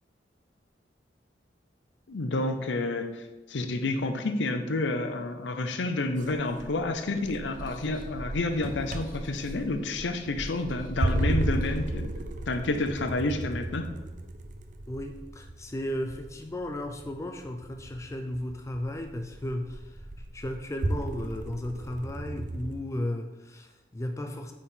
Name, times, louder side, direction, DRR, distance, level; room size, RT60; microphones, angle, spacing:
voice 1, 2.1-3.2 3.5-12.1 12.5-13.9, left 2 dB, 75° left, 7 dB, 0.6 m, -29 dB
sound 1, 6.2-22.8, right 1 dB, 45° right, 0.6 m, -35 dB
Squeak, 7.0-12.2, left 1 dB, 50° left, 1.0 m, -47 dB
voice 2, 14.9-20.1 20.3-24.5, left 1 dB, 15° left, 5 dB, 0.4 m, -35 dB
8.5 x 4.2 x 3.7 m, 1.1 s
head